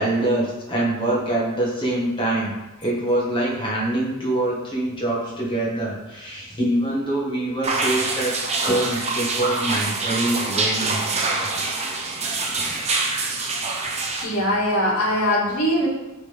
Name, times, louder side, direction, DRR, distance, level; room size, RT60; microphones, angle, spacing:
voice 1, 0.0-2.5 2.8-8.3 8.6-11.0, right 1 dB, 20° left, -4 dB, 1.8 m, -24 dB
sound 1, 7.6-14.2, right 3 dB, 30° right, 0.9 m, -25 dB
voice 2, 14.2-15.9, equal, 85° left, -6 dB, 2.4 m, -21 dB
8.7 x 4.0 x 3.6 m, 1.0 s
head